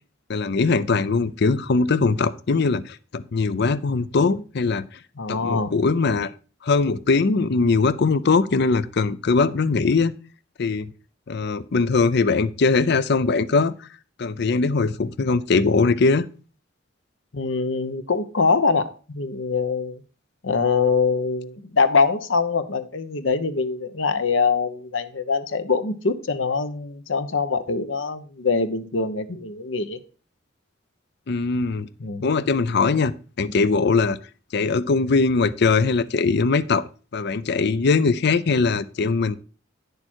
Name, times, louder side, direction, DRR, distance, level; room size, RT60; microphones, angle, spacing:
voice 1, 0.3-4.8 5.3-6.3 6.6-10.1 10.6-10.9 11.3-13.9 14.2-16.3 31.3-31.9 32.2-34.2 34.5-36.9 37.1-39.4, left 4 dB, 60° left, 0.5 m, -21 dB
voice 2, 5.2-5.7 17.3-20.0 20.4-30.0 32.0-32.3, left 4 dB, 75° left, 1.0 m, -23 dB
9.8 x 6.8 x 4.4 m
head